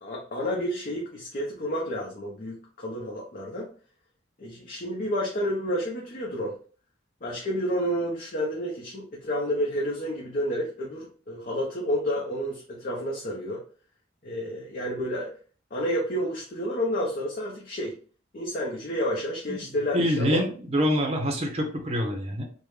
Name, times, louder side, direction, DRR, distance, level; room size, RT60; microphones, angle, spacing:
voice 1, 0.0-3.7 4.4-6.6 7.2-13.6 14.2-15.3 15.7-18.0 18.3-20.4, equal, 45° left, -2 dB, 0.7 m, -30 dB
voice 2, 19.9-22.4, equal, 35° right, 2 dB, 0.6 m, -26 dB
3.5 x 2.1 x 3.1 m, 0.41 s
head